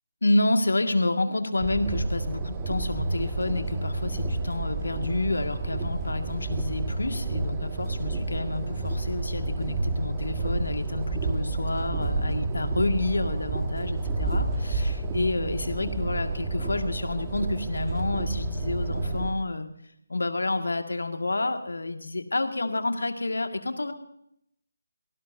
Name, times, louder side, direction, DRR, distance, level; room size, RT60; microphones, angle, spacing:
voice 1, 0.2-19.7 20.1-23.9, left 2 dB, 75° left, 6 dB, 2.0 m, -29 dB
sound 1, 1.6-19.3, right 2 dB, 20° right, 1.7 m, -30 dB
24.5 x 18.5 x 2.8 m, 0.74 s
figure-of-eight pair, 155°, 0 cm